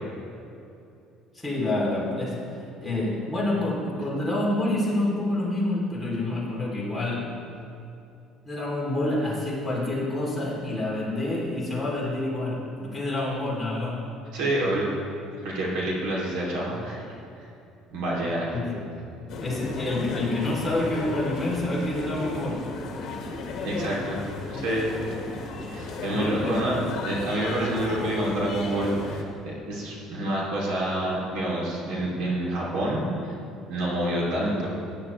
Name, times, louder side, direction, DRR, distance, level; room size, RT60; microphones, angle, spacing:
voice 1, 1.3-2.5 2.8-7.4 8.4-14.1 18.5-18.8 19.4-22.7 26.1-26.5, left 1 dB, 5° left, -6 dB, 3.1 m, -27 dB
voice 2, 14.3-14.9 15.4-17.0 17.9-18.5 23.6-24.2 24.5-24.9 25.7-26.8 27.0-33.3 33.7-34.7, right 1 dB, 80° right, -3 dB, 2.8 m, -27 dB
sound 1, 19.3-29.2, left 3 dB, 50° left, 1.7 m, -35 dB
17.0 x 9.9 x 3.2 m, 2.7 s
cardioid pair, 135°, 0 cm